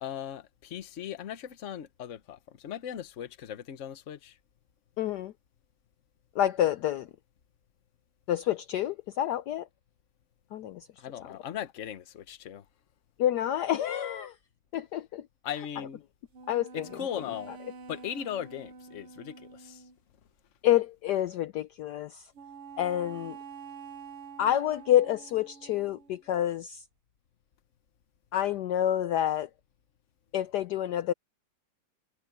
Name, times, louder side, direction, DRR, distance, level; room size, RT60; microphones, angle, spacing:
voice 1, 0.0-4.4 11.0-12.6 15.4-16.0 16.7-17.5 17.9-19.8, left 9 dB, 50° left, 1.0 m, -38 dB
voice 2, 5.0-5.3 6.3-7.1 8.3-9.7 10.5-10.9 13.2-14.4 14.7-15.3 16.5-16.9 20.6-22.3 22.8-23.4 24.4-26.8 28.3-29.5 30.3-31.1, left 11 dB, 75° left, 0.9 m, -28 dB
sound 1, 16.3-20.0 22.3-26.3, right 5 dB, 90° right, 2.5 m, -47 dB
omnidirectional pair, 2.4 m